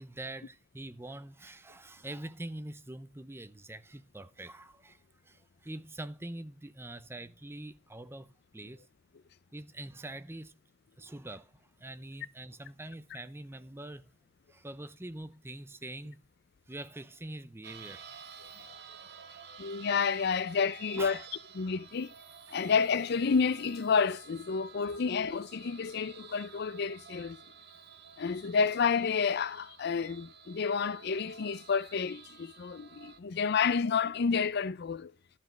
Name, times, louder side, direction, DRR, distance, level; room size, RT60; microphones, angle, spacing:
voice 1, 0.0-8.9 9.5-10.6 11.0-14.1 14.5-16.2 16.7-18.1 18.6-18.7 21.0-21.2 22.5-22.6, right 1 dB, 15° right, 0.6 m, -44 dB
sound 1, 17.6-33.2, right 7 dB, 60° right, 1.1 m, -52 dB
voice 2, 19.6-21.2 21.6-22.1 22.5-27.4 28.2-35.1, left 5 dB, 55° left, 0.5 m, -30 dB
11.5 x 5.1 x 7.6 m
head